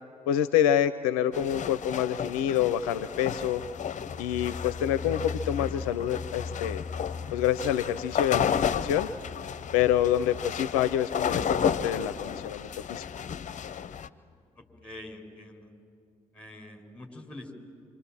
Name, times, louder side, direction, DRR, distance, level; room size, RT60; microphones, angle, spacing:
voice 1, 0.3-3.6 4.2-6.8 7.3-9.1 9.7-13.1, left 10 dB, 75° left, 13 dB, 0.5 m, -27 dB
sound 1, 1.3-14.1, left 8 dB, 45° left, 0.8 m, -33 dB
sound 2, 3.5-14.0 14.3-14.4 14.7-14.8, left 4 dB, 25° left, 1.5 m, -42 dB
voice 2, 14.6-15.7 16.3-17.6, left 1 dB, 5° left, 3 dB, 5.3 m, -45 dB
26.5 x 26.5 x 7.4 m, 2.2 s
figure-of-eight pair, 40°, 18 cm